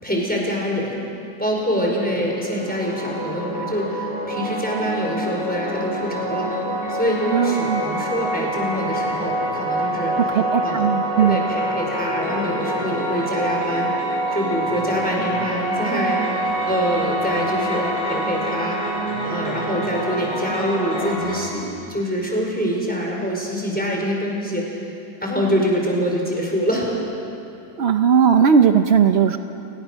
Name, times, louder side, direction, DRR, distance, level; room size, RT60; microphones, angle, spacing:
voice 1, 0.0-1.0 1.4-6.5 6.9-10.1 10.6-10.9 11.2-13.9 14.3-18.8 19.2-24.8 25.2-26.9 27.2-27.3, equal, 5° left, -2 dB, 4.6 m, -25 dB
sound 1, 2.0-21.4, right 1 dB, 80° left, 6.1 m, -26 dB
voice 2, 7.3-7.8 10.3-11.4 27.8-29.4, right 7 dB, 75° right, 7 dB, 0.5 m, -17 dB
29.5 x 19.0 x 6.3 m, 2.7 s
omnidirectional pair, 2.0 m